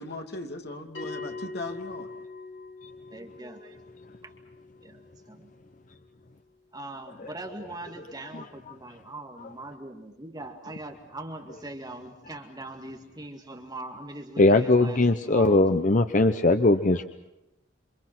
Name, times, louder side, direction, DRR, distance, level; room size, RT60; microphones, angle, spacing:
voice 1, 0.0-2.1, left 2 dB, 60° left, 4 dB, 2.7 m, -38 dB
Bell, 0.9-6.0, left 3 dB, 85° left, 6.3 m, -43 dB
voice 2, 3.1-3.8 4.2-4.3 4.8-5.0 5.3-5.5 6.7-15.8, right 2 dB, 20° right, 3 dB, 2.2 m, -41 dB
voice 3, 14.4-17.0, left 2 dB, 45° left, 8 dB, 0.9 m, -20 dB
28.0 x 26.5 x 6.2 m, 0.96 s
head